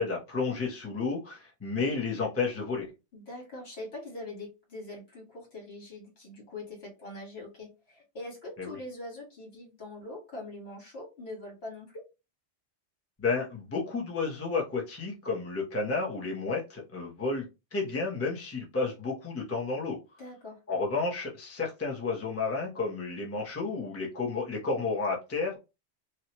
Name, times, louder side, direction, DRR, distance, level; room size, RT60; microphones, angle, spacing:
voice 1, 0.0-2.9 8.6-8.8 13.2-17.5 17.7-20.0 20.7-25.6, left 4 dB, 15° left, -2 dB, 0.7 m, -31 dB
voice 2, 3.1-12.0 20.2-20.6, left 2 dB, 65° left, -2 dB, 1.7 m, -43 dB
2.8 x 2.3 x 2.9 m, 0.27 s
omnidirectional pair, 1.1 m